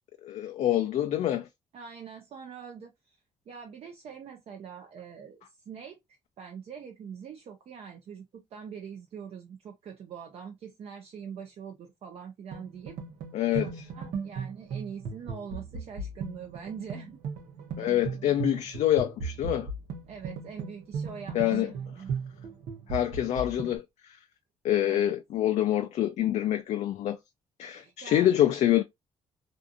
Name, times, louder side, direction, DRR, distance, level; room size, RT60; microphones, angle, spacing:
voice 1, 0.2-1.5 13.3-13.7 17.8-19.7 21.3-21.7 22.9-23.8 24.6-27.2 27.6-28.8, left 12 dB, 70° left, 0.4 m, -26 dB
voice 2, 1.7-3.2 3.5-13.0 13.6-17.2 20.1-22.1 24.9-25.0 27.7-28.3, right 7 dB, 55° right, 0.5 m, -44 dB
sound 1, 12.5-23.8, right 5 dB, 85° right, 0.8 m, -37 dB
2.6 x 2.5 x 2.5 m
cardioid pair, 100°, 12 cm